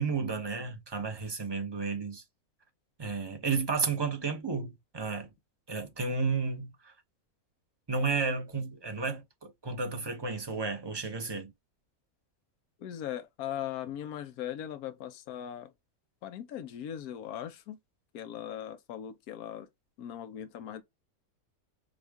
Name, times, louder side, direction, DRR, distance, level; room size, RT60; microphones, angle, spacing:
voice 1, 0.0-2.2 3.0-5.3 5.7-6.9 7.9-11.5, right 4 dB, 20° right, 0.7 m, -32 dB
voice 2, 12.8-15.7 16.2-17.8 18.1-19.7 20.0-20.8, left 10 dB, 75° left, 1.2 m, -39 dB
6.1 x 2.4 x 3.4 m
omnidirectional pair, 1.6 m